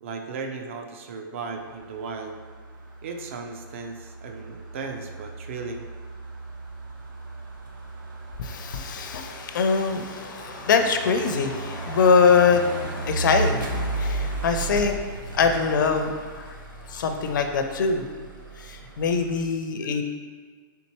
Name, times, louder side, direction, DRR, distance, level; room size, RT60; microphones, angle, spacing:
voice 1, 0.0-2.4 3.0-5.9, right 4 dB, 35° right, 4 dB, 0.4 m, -36 dB
sound 1, 1.6-19.4, right 3 dB, 65° right, 0.7 m, -35 dB
voice 2, 8.4-15.0 15.3-16.6 16.9-18.0 18.6-20.0, left 5 dB, 60° left, 6 dB, 0.4 m, -23 dB
4.3 x 3.5 x 3.0 m, 1.5 s
hypercardioid pair, 170°, 12 cm